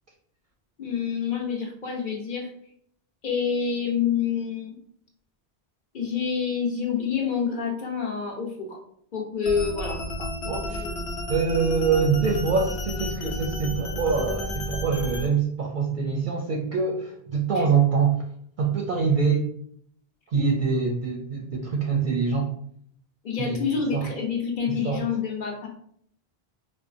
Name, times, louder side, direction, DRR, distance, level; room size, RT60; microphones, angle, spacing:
voice 1, 0.8-2.5 3.2-4.8 5.9-8.8 9.1-10.0 10.4-10.9 20.3-20.5 22.0-22.1 23.2-25.7, left 6 dB, 55° left, 0 dB, 0.9 m, -28 dB
sound 1, 9.4-15.3, left 1 dB, 85° left, 1.0 m, -32 dB
voice 2, 10.5-10.8 11.3-18.2 18.6-19.5 20.3-22.5 23.4-23.6 23.9-24.1 24.7-25.0, right 5 dB, 60° right, 0 dB, 0.6 m, -24 dB
4.4 x 2.1 x 2.5 m, 0.65 s
omnidirectional pair, 1.1 m